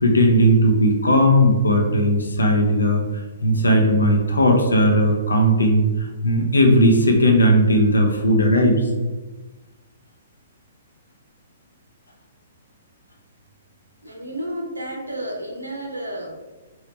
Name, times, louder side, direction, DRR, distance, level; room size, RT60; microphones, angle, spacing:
voice 1, 0.0-3.0 3.4-8.8, equal, 75° left, 2 dB, 0.6 m, -17 dB
voice 2, 14.0-16.3, right 1 dB, 85° right, 1 dB, 0.7 m, -31 dB
3.1 x 2.8 x 3.2 m, 1.2 s
figure-of-eight pair, 120°, 0 cm